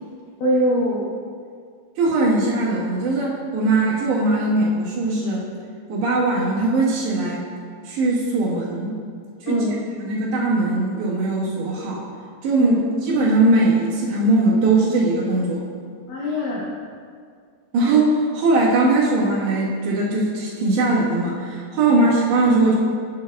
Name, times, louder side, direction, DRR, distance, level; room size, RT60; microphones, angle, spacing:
voice 1, 0.4-1.1 9.5-9.8 12.6-12.8 16.1-16.7 21.9-22.0, equal, 85° left, -5 dB, 1.8 m, -22 dB
voice 2, 2.0-5.4 5.9-7.4 7.9-9.0 9.4-9.6 10.0-12.0 12.4-15.6 17.7-22.8, right 2 dB, 75° right, -6 dB, 3.6 m, -20 dB
9.1 x 8.8 x 2.3 m, 2.1 s
omnidirectional pair, 5.1 m